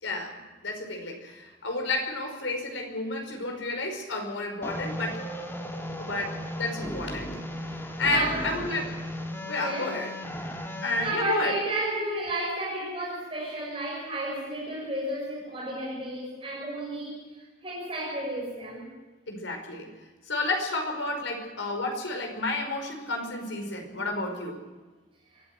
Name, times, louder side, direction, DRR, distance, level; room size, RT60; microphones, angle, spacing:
voice 1, 0.0-5.2 6.0-7.3 7.7-8.9 9.3-10.1 10.8-11.5 19.3-19.9 20.3-24.6, left 2 dB, 85° left, 4 dB, 5.2 m, -31 dB
sound 1, 4.6-11.1, left 1 dB, 15° left, 1.8 m, -36 dB
voice 2, 8.0-8.5 9.6-10.0 11.0-18.9, right 1 dB, 30° right, -3 dB, 6.2 m, -32 dB
23.5 x 14.5 x 8.0 m, 1.3 s
head